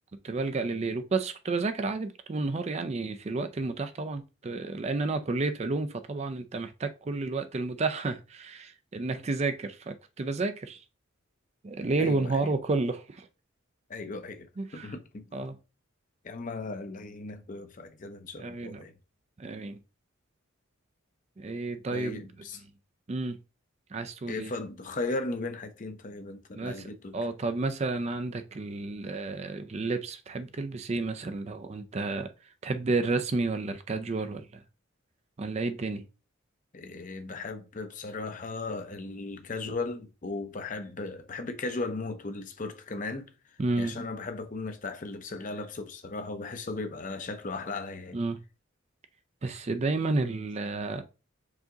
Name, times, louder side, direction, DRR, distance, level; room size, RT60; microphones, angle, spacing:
voice 1, 0.2-10.8 11.6-13.3 14.6-14.9 15.3-15.6 18.4-18.8 19.4-19.8 21.4-22.3 23.1-23.4 23.9-24.5 26.6-32.3 32.6-34.5 35.4-36.0 43.6-43.9 48.1-48.4 49.4-51.0, right 3 dB, 30° right, 0.4 m, -31 dB
voice 2, 12.0-12.5 13.9-15.2 16.2-18.9 21.9-22.6 24.3-27.2 36.7-43.3 43.8-48.2 49.5-49.6, left 3 dB, 40° left, 0.6 m, -37 dB
4.8 x 2.8 x 3.8 m
head